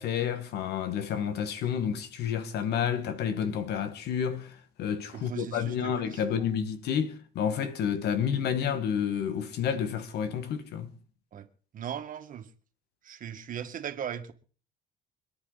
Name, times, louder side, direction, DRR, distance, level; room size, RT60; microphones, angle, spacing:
voice 1, 0.0-10.9, left 8 dB, 75° left, 1.9 m, -30 dB
voice 2, 5.1-6.2 11.3-11.5 11.7-12.5 13.0-14.3, right 9 dB, 55° right, 2.0 m, -38 dB
26.5 x 9.7 x 4.2 m
cardioid pair, 110°, 17 cm